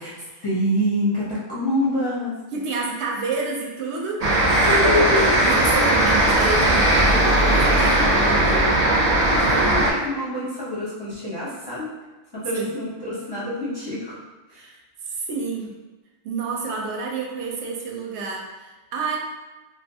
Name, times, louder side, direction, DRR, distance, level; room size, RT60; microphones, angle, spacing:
voice 1, 0.0-2.4 4.7-5.3 8.0-8.7 9.1-11.9 12.3-14.2 14.5-14.7, left 1 dB, 25° left, -9 dB, 0.6 m, -26 dB
voice 2, 2.5-4.2 5.4-8.7 12.5-12.7 14.6-14.8 15.0-15.7 16.2-19.2, right 4 dB, 85° right, -1 dB, 0.9 m, -29 dB
sound 1, 4.2-9.9, right 1 dB, 50° right, 0.5 m, -18 dB
2.5 x 2.3 x 2.6 m, 1.2 s
omnidirectional pair, 1.1 m